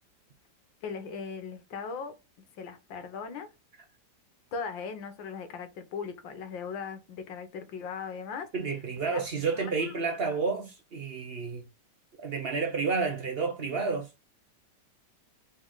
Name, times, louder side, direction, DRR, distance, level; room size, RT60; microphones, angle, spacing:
voice 1, 0.8-2.2 2.6-3.5 4.5-8.5 9.1-9.2 9.5-9.9, left 5 dB, 85° left, 1.7 m, -38 dB
voice 2, 8.5-11.7 12.2-14.1, right 4 dB, 50° right, 0.7 m, -30 dB
4.0 x 3.2 x 3.7 m
omnidirectional pair, 2.0 m